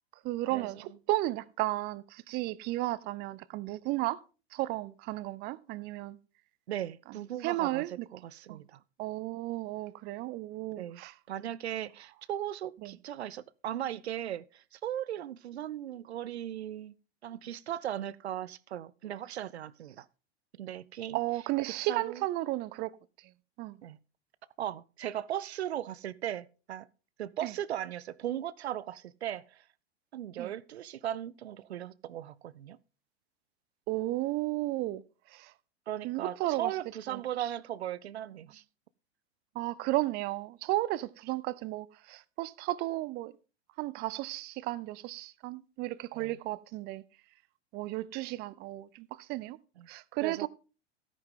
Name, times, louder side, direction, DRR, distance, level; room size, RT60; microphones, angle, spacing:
voice 1, 0.2-4.2 4.5-6.2 7.4-8.1 8.5-8.6 9.0-11.1 12.8-12.9 21.1-22.9 23.6-23.8 27.4-27.5 30.4-30.5 33.9-35.0 35.3-35.5 36.0-36.7 37.1-37.5 39.5-43.4 43.8-47.0 47.7-49.6 49.9-50.5, right 18 dB, 30° right, 0.5 m, -34 dB
voice 2, 6.7-8.8 10.8-11.0 11.3-16.9 17.2-20.1 20.6-21.2 21.9-22.2 23.8-24.0 24.6-26.9 27.2-29.6 30.1-32.8 35.9-38.6 46.1-46.4 49.8-49.9 50.2-50.5, right 11 dB, 75° right, 0.6 m, -37 dB
13.5 x 9.1 x 3.7 m
figure-of-eight pair, 95°, 33 cm